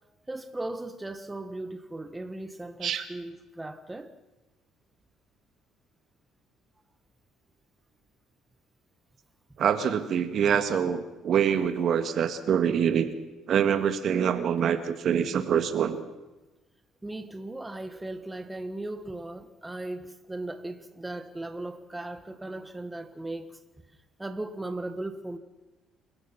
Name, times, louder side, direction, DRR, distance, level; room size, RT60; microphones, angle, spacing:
voice 1, 0.3-4.1 17.0-23.6 24.2-25.4, right 2 dB, 10° right, 1.5 m, -37 dB
voice 2, 9.6-13.1 13.5-16.0, right 8 dB, 60° right, 1.8 m, -25 dB
28.0 x 16.0 x 5.9 m
cardioid pair, 95°, 0 cm